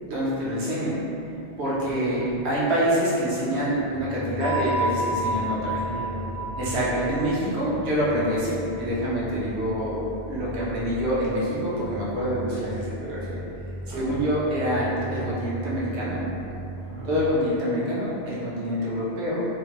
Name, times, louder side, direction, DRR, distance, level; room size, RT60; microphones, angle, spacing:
voice 1, 0.0-1.0 1.6-2.2 2.4-5.8 6.6-13.4 13.9-16.2 17.1-19.5, equal, 70° right, -8 dB, 1.1 m, -26 dB
voice 2, 1.9-2.3 5.6-7.0 13.9-14.4 16.7-17.2, right 2 dB, 50° right, -5 dB, 0.6 m, -38 dB
sound 1, 3.7-17.1, right 1 dB, 5° left, 0.3 m, -38 dB
sound 2, 4.4-9.0, right 1 dB, 70° left, 1.4 m, -31 dB
3.6 x 2.1 x 2.9 m, 2.8 s
omnidirectional pair, 1.2 m